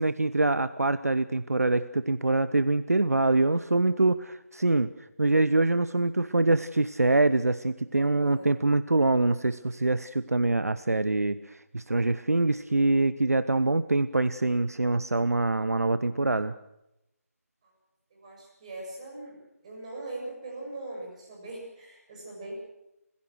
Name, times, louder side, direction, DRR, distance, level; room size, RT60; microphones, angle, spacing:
voice 1, 0.0-4.9 5.2-16.5, right 2 dB, 75° right, 14 dB, 0.9 m, -24 dB
voice 2, 8.0-8.6 17.6-17.7 18.1-22.5, right 2 dB, 25° right, -1 dB, 7.4 m, -41 dB
29.5 x 16.0 x 6.4 m, 0.88 s
figure-of-eight pair, 160°, 8 cm